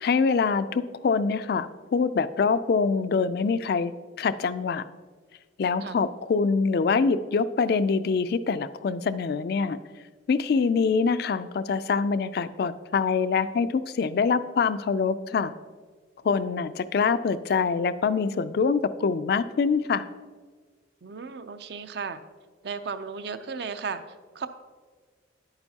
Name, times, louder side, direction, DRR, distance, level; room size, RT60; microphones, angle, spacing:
voice 1, 0.0-3.9 4.2-4.8 5.6-9.8 10.3-15.5 16.2-20.1, left 5 dB, 50° left, 13 dB, 0.3 m, -25 dB
voice 2, 21.0-22.2 22.6-24.5, right 5 dB, 55° right, 10 dB, 0.5 m, -35 dB
10.5 x 8.9 x 2.8 m, 1.5 s
head